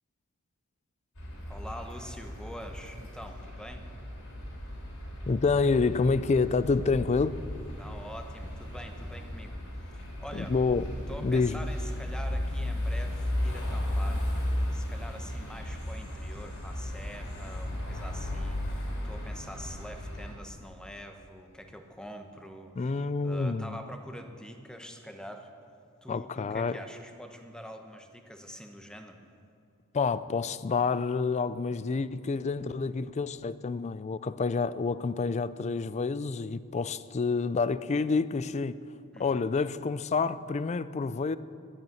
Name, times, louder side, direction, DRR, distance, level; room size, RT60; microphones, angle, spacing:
sound 1, 1.2-20.3, left 1 dB, 65° left, 3.5 m, -35 dB
voice 1, 1.5-3.9 7.8-10.5 11.1-14.3 14.7-25.5 26.0-29.2 39.1-39.5, equal, 5° left, 1.0 m, -45 dB
voice 2, 5.3-7.4 10.3-10.9 11.2-11.6 22.8-23.8 26.1-26.8 29.9-38.8 39.2-41.4, left 4 dB, 30° left, 0.4 m, -28 dB
12.0 x 8.7 x 9.1 m
head